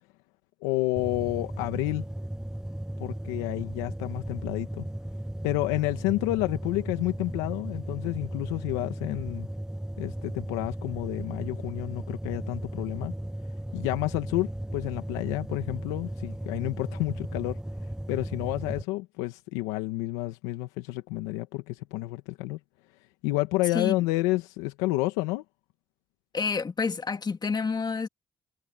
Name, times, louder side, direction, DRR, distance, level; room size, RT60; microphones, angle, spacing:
voice 1, 0.6-2.0 3.0-4.9 5.4-9.5 10.0-13.1 13.7-17.6 18.1-22.6 23.2-25.4, left 19 dB, 90° left, 1.8 m, -30 dB
sound 1, 1.0-18.8, right 1 dB, 5° right, 1.1 m, -36 dB
voice 2, 26.3-28.1, left 5 dB, 40° left, 2.4 m, -28 dB
hypercardioid pair, 50°, 11 cm